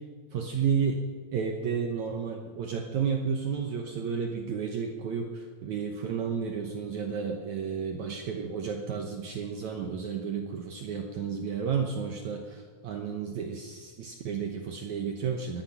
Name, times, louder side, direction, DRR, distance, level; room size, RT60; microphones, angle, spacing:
voice 1, 0.3-1.0 1.3-15.6, right 6 dB, 75° right, 3 dB, 1.7 m, -32 dB
18.0 x 11.5 x 5.9 m, 1.5 s
omnidirectional pair, 4.7 m